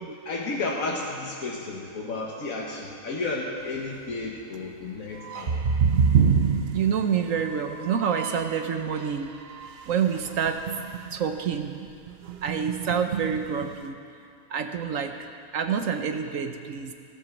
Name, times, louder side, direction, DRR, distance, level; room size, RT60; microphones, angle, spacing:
voice 1, 0.2-5.6, left 3 dB, 75° left, -2 dB, 1.7 m, -32 dB
sound 1, 5.2-8.6 8.9-11.2 11.5-11.7 12.1-13.8, right 6 dB, 55° right, 0.8 m, -27 dB
voice 2, 6.7-9.3 9.9-10.6 11.1-11.9 12.4-13.9 14.5-15.1 15.5-16.9, right 7 dB, 70° right, 6 dB, 1.2 m, -27 dB
14.0 x 13.0 x 7.2 m, 2.3 s
omnidirectional pair, 1.5 m